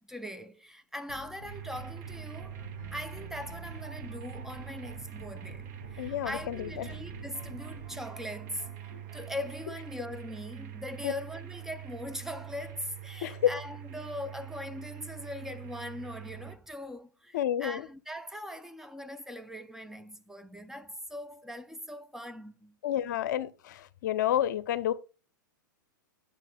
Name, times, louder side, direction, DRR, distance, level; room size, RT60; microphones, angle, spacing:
voice 1, 0.1-2.6 2.9-22.8, left 1 dB, 5° right, 0.4 m, -41 dB
sound 1, 1.1-7.9, equal, 85° right, 3.9 m, -48 dB
sound 2, 1.5-16.5, right 12 dB, 55° right, 1.1 m, -44 dB
sound 3, 2.1-9.6, right 2 dB, 35° right, 2.2 m, -55 dB
voice 2, 6.0-6.9 11.0-11.1 13.2-13.5 17.3-17.8 22.8-24.9, left 11 dB, 60° left, 0.6 m, -29 dB
9.0 x 6.8 x 2.2 m
hypercardioid pair, 115°, 11 cm